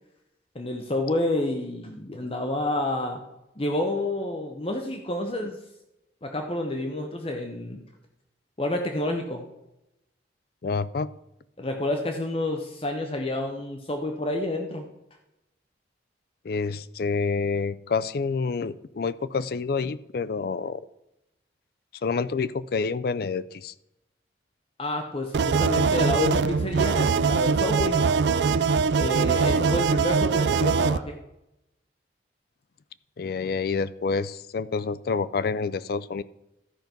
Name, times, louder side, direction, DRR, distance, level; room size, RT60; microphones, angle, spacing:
voice 1, 0.5-3.2 3.6-5.6 6.2-7.8 8.6-9.4 11.6-14.9 24.8-28.0 29.0-31.2, left 1 dB, 30° left, 4 dB, 0.8 m, -29 dB
voice 2, 10.6-11.1 16.4-20.8 22.0-23.7 33.2-36.2, left 4 dB, 55° left, 16 dB, 0.4 m, -28 dB
sound 1, 25.3-31.0, right 5 dB, 70° right, 0.4 m, -22 dB
13.0 x 5.2 x 5.9 m, 0.90 s
head